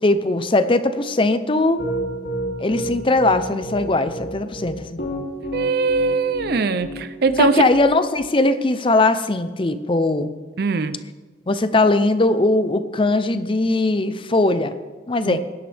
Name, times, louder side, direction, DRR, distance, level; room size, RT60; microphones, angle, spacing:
voice 1, 0.0-1.8 2.6-5.0 7.4-10.3 11.5-14.7 15.1-15.4, left 2 dB, 30° left, 11 dB, 0.6 m, -19 dB
Piano, 1.8-8.2, right 1 dB, 65° left, 3.1 m, -30 dB
voice 2, 5.5-7.6 10.6-11.0 15.3-15.4, right 4 dB, 55° right, 13 dB, 0.6 m, -21 dB
19.0 x 11.0 x 3.5 m, 1.3 s
head